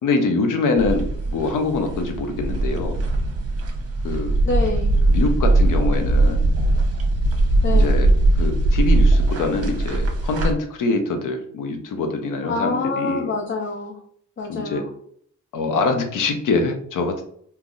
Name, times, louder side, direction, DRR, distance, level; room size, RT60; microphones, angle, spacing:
voice 1, 0.0-1.0 1.3-3.0 4.0-4.3 5.1-6.5 7.7-8.1 8.4-13.3 14.5-14.8 15.5-17.2, left 3 dB, 70° left, 5 dB, 0.8 m, -24 dB
voice 2, 0.7-1.0 4.4-5.0 7.6-8.1 12.5-14.0 14.4-14.9, left 3 dB, 35° left, 2 dB, 0.7 m, -26 dB
sound 1, 0.8-10.5, right 2 dB, 45° right, 0.8 m, -20 dB
3.8 x 2.8 x 2.5 m, 0.64 s
supercardioid pair, 50°, 32 cm